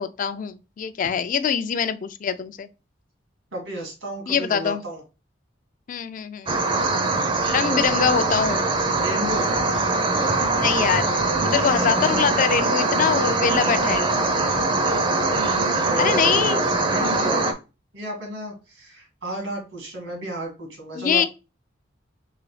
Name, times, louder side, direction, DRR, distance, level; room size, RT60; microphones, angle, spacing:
voice 1, 0.0-2.7 4.3-4.8 5.9-6.5 7.5-8.7 10.5-14.0 16.0-16.6 21.0-21.3, left 7 dB, 45° left, 0.3 m, -24 dB
voice 2, 3.5-5.0 7.0-8.1 9.0-9.5 13.5-13.8 15.6-16.5 16.9-17.5 17.9-21.3, right 1 dB, 85° right, 2.0 m, -33 dB
sound 1, 6.5-17.5, right 3 dB, 25° right, 0.5 m, -22 dB
3.9 x 3.0 x 3.1 m
head